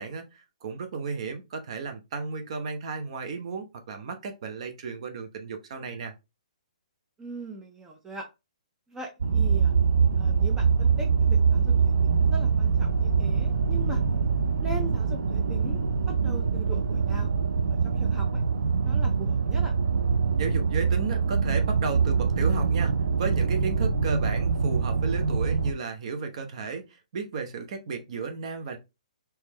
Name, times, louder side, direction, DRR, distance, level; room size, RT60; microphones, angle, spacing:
voice 1, 0.0-6.1 20.4-22.9 23.2-28.8, right 5 dB, 50° right, 5 dB, 0.9 m, -34 dB
voice 2, 7.2-8.3 8.9-9.7 10.1-14.0 14.6-15.8 16.2-17.3 17.8-18.4 18.8-19.7, right 2 dB, 10° right, 2 dB, 0.6 m, -40 dB
sound 1, 9.2-25.7, right 5 dB, 85° right, 0.5 m, -24 dB
3.5 x 3.1 x 3.2 m, 0.25 s
hypercardioid pair, 155°, 4 cm